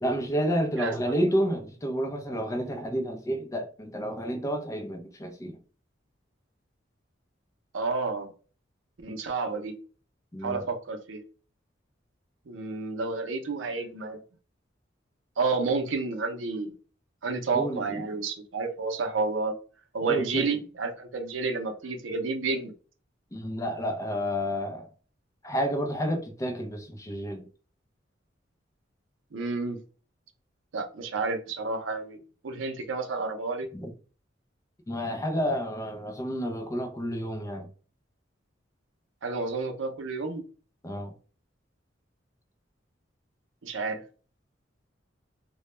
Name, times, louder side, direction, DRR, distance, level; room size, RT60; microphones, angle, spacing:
voice 1, 0.0-5.6 10.3-10.6 17.5-18.0 20.0-20.5 23.3-24.9 25.4-27.4 33.7-33.9 34.9-37.7 40.8-41.1, equal, 15° left, 0.5 m, -30 dB
voice 2, 0.8-1.3 7.7-8.3 9.0-9.8 10.4-11.2 12.5-14.2 15.4-16.7 17.2-19.5 19.9-22.7 29.3-29.8 30.7-32.2 32.4-33.7 39.2-40.4 43.6-44.0, right 4 dB, 85° right, 0.6 m, -30 dB
2.2 x 2.1 x 3.0 m
head